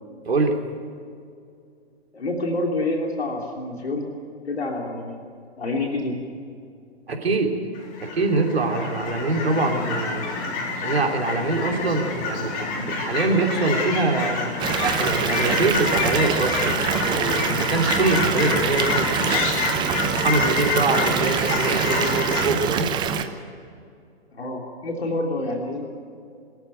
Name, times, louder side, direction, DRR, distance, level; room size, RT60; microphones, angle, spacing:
voice 1, 0.2-0.6 7.1-7.5 8.0-10.2 10.8-14.5 14.8-19.4 20.2-22.9, right 3 dB, 70° right, 2 dB, 3.3 m, -24 dB
voice 2, 2.1-4.1 4.4-5.2 5.6-6.2 24.3-25.9, left 2 dB, 70° left, 1 dB, 3.2 m, -27 dB
Fowl / Chirp tweet, 7.7-22.5, left 3 dB, 25° left, 3.9 m, -27 dB
Water tap faucet / Bathtub (filling or washing) / Fill (with liquid), 14.6-23.2, right 7 dB, 15° right, 0.9 m, -25 dB
24.0 x 14.0 x 9.2 m, 2.4 s
figure-of-eight pair, 125°, 33 cm